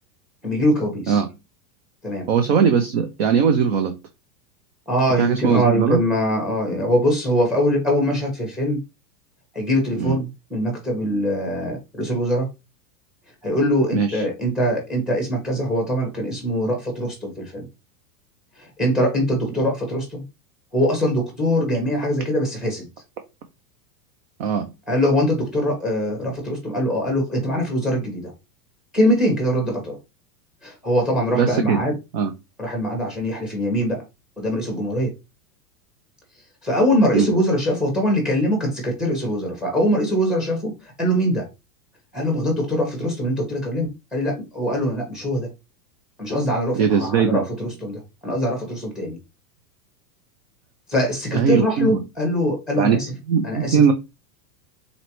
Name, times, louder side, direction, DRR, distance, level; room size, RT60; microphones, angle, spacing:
voice 1, 0.4-1.2 2.0-2.3 4.9-8.8 9.5-12.5 13.4-17.7 18.6-20.2 20.7-22.9 24.9-28.3 28.9-30.0 30.6-31.9 32.6-34.0 34.4-35.1 36.6-41.5 42.1-45.5 46.2-49.2 50.9-53.1 53.4-53.9, equal, ahead, 1.4 m, -22 dB
voice 2, 2.3-3.9 5.2-6.0 10.0-10.2 13.9-14.2 24.4-24.6 31.3-31.8 32.1-32.3 37.1-37.3 46.8-47.4 51.3-52.0 52.8-53.0 53.3-53.9, right 6 dB, 40° right, 0.4 m, -19 dB
4.0 x 3.1 x 3.0 m
supercardioid pair, 160°, 50 cm